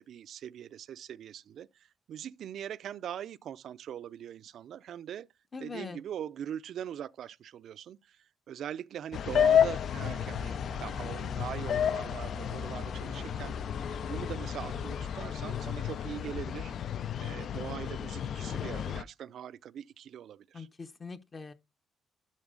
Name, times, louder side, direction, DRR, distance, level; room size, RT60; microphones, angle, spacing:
voice 1, 0.0-5.3 5.6-13.6 14.0-16.7 17.2-20.7, right 9 dB, 70° right, 0.4 m, -42 dB
voice 2, 5.5-6.0 20.5-21.5, left 4 dB, 35° left, 0.8 m, -42 dB
sound 1, 9.1-19.0, left 9 dB, 60° left, 0.4 m, -31 dB
sound 2, 10.0-15.3, equal, 15° right, 0.6 m, -45 dB
11.5 x 4.0 x 3.8 m
cardioid pair, 90°, 0 cm